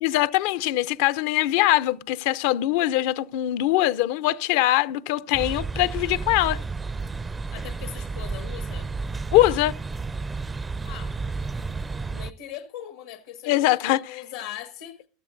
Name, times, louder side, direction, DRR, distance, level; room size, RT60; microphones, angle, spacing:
voice 1, 0.0-6.6 9.3-9.7 13.5-14.2, left 15 dB, 70° left, 0.5 m, -22 dB
sound 1, 5.3-12.3, right 4 dB, 15° right, 0.4 m, -32 dB
voice 2, 7.5-8.9 10.8-11.1 12.1-15.0, left 11 dB, 85° left, 1.3 m, -40 dB
15.0 x 12.5 x 2.6 m
supercardioid pair, 115°, 0 cm